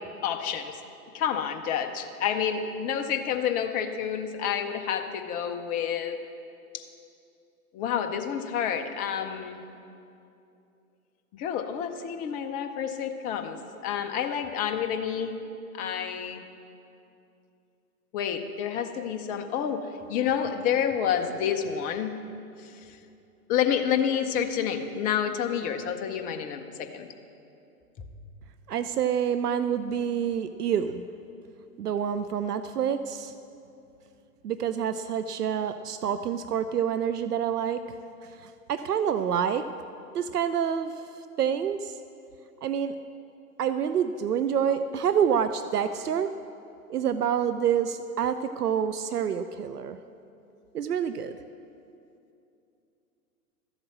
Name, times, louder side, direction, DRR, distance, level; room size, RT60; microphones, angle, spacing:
voice 1, 0.2-0.8 1.1-6.2 6.7-6.8 7.7-9.6 11.3-15.4 15.7-16.4 18.1-22.2 22.6-23.0 23.5-27.1 28.0-28.1, left 8 dB, 20° left, 7 dB, 0.6 m, -29 dB
voice 2, 28.7-31.0 31.8-33.3 34.4-37.8 38.4-39.7 40.1-41.0 41.4-42.0 42.6-42.9 43.6-46.3 46.9-50.0 50.7-51.4, right 8 dB, 85° right, 11 dB, 0.6 m, -27 dB
13.0 x 8.0 x 7.4 m, 2.7 s
figure-of-eight pair, 115°, 45 cm